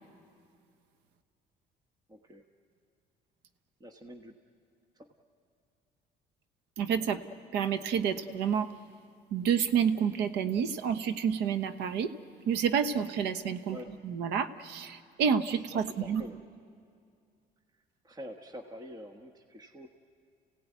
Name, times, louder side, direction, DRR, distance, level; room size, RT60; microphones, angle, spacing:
voice 1, 2.1-2.4 3.8-4.3 4.9-5.1 13.7-13.9 15.7-16.4 17.7-19.9, equal, 25° right, 5 dB, 1.3 m, -46 dB
voice 2, 6.8-7.2 7.5-8.7 9.3-12.1 12.5-13.8 14.0-16.2, right 7 dB, 85° right, 11 dB, 1.0 m, -29 dB
29.5 x 16.5 x 9.2 m, 2.3 s
cardioid pair, 110°, 17 cm